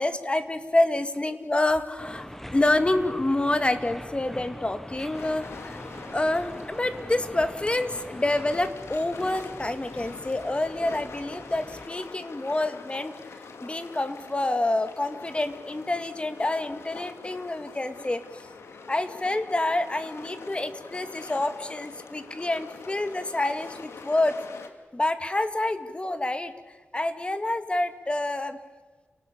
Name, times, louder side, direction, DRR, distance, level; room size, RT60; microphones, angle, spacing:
voice 1, 0.0-2.3 2.5-5.8 6.1-13.1 13.6-18.2 18.9-24.4 24.9-26.5 26.9-28.6, left 2 dB, 25° left, 10 dB, 2.1 m, -27 dB
sound 1, 2.0-11.9, equal, 5° left, 1.5 m, -42 dB
sound 2, 5.1-24.7, left 4 dB, 85° left, 2.4 m, -44 dB
30.0 x 19.0 x 8.6 m, 1.3 s
cardioid pair, 70°, 4 cm